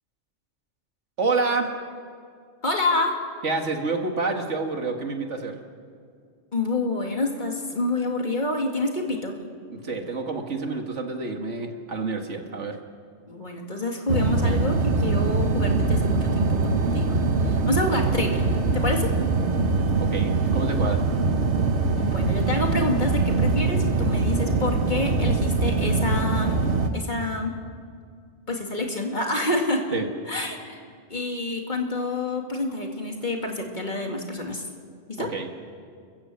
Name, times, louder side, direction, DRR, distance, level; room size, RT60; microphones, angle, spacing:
voice 1, 1.2-1.7 3.4-5.6 9.7-12.8 20.0-21.2 29.9-30.1 35.2-35.5, right 3 dB, 85° right, 4 dB, 2.3 m, -28 dB
voice 2, 2.6-3.2 6.5-9.4 13.3-18.4 18.7-19.1 22.0-26.6 26.9-27.5 28.5-30.0 30.3-30.8 31.1-34.6 35.2-35.3, left 2 dB, 40° left, 2 dB, 2.4 m, -28 dB
sound 1, 14.1-26.9, right 3 dB, 70° right, 1.5 m, -23 dB
30.0 x 15.0 x 7.7 m, 2.2 s
omnidirectional pair, 1.2 m